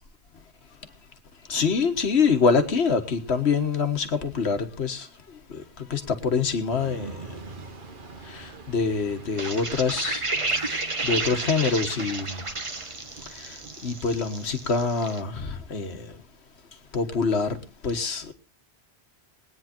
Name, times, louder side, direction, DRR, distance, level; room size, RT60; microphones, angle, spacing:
voice 1, 1.5-7.4 8.2-12.5 13.3-16.2 16.9-18.3, left 5 dB, 75° left, 1.7 m, -26 dB
sound 1, 6.7-14.7, right 4 dB, 50° right, 1.4 m, -45 dB
sound 2, 9.4-15.2, right 3 dB, 30° right, 1.1 m, -31 dB
21.0 x 9.5 x 4.4 m
omnidirectional pair, 1.1 m